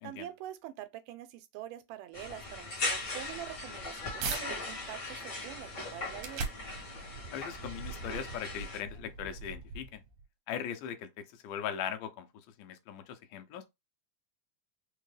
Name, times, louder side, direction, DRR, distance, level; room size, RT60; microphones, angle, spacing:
voice 1, 0.0-6.4, right 13 dB, 90° right, 2.2 m, -45 dB
sound 1, 2.1-8.8, left 2 dB, 45° left, 1.1 m, -39 dB
sound 2, 3.3-4.4 5.0-10.2, right 4 dB, 70° right, 1.4 m, -42 dB
voice 2, 7.3-10.0 10.5-12.3 12.6-13.7, left 9 dB, 85° left, 2.2 m, -39 dB
5.3 x 2.2 x 3.2 m
omnidirectional pair, 3.7 m